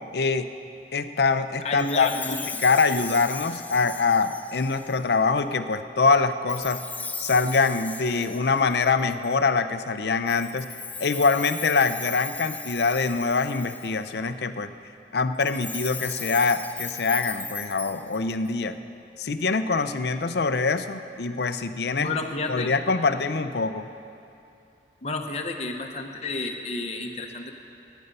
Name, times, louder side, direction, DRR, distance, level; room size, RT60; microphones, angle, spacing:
voice 1, 0.1-0.5 0.9-6.8 7.2-10.7 11.0-14.7 15.1-18.8 19.2-22.1 22.5-23.9, left 4 dB, 65° left, 10 dB, 0.5 m, -24 dB
voice 2, 1.6-2.4 21.9-22.7 25.0-27.5, left 3 dB, 35° left, 3 dB, 0.9 m, -30 dB
Chime, 1.8-5.1 6.5-9.3 10.3-14.1 15.3-18.5, left 4 dB, 10° left, 0.3 m, -37 dB
19.0 x 9.2 x 5.4 m, 2.6 s
head